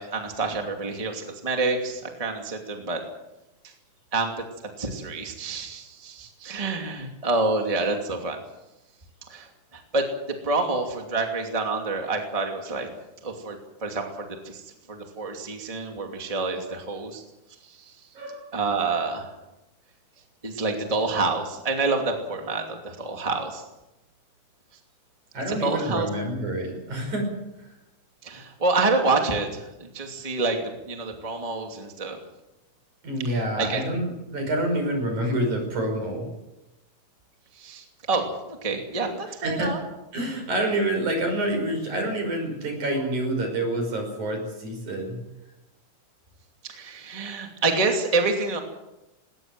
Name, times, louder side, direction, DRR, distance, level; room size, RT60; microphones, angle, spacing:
voice 1, 0.0-3.0 3.6-3.7 4.1-4.3 4.8-8.4 9.3-10.1 10.4-12.9 13.2-14.6 14.9-17.2 17.7-17.9 18.5-19.3 20.4-23.6 25.6-26.1 28.2-32.2 33.3-33.8 37.5-39.8 46.6-48.6, right 3 dB, 10° right, 3 dB, 2.3 m, -27 dB
voice 2, 18.2-18.5 25.3-27.3 27.6-27.7 33.0-36.3 39.3-39.7 40.1-45.2, right 1 dB, 65° right, 4 dB, 6.9 m, -27 dB
19.5 x 19.0 x 7.6 m, 0.95 s
omnidirectional pair, 3.6 m